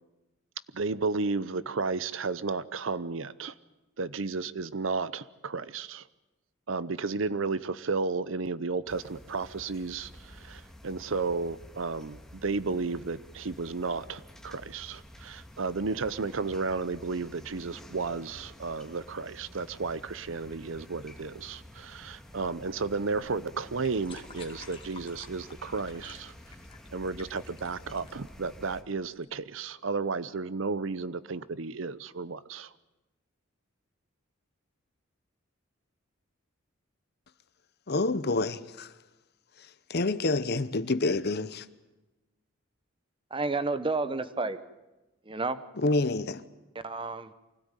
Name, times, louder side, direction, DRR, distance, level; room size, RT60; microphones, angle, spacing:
voice 1, 0.7-3.5 4.0-6.0 6.7-26.3 26.9-32.7, right 4 dB, 70° right, 0.7 m, -33 dB
sound 1, 8.9-28.8, left 1 dB, 5° left, 1.9 m, -50 dB
sound 2, 23.8-29.4, left 4 dB, 25° left, 2.1 m, -52 dB
voice 2, 37.9-39.0 39.6-41.6 45.7-46.4, left 2 dB, 50° left, 0.9 m, -28 dB
voice 3, 43.3-44.6 45.3-45.6 46.8-47.3, right 3 dB, 25° right, 1.0 m, -30 dB
24.5 x 16.5 x 9.1 m
head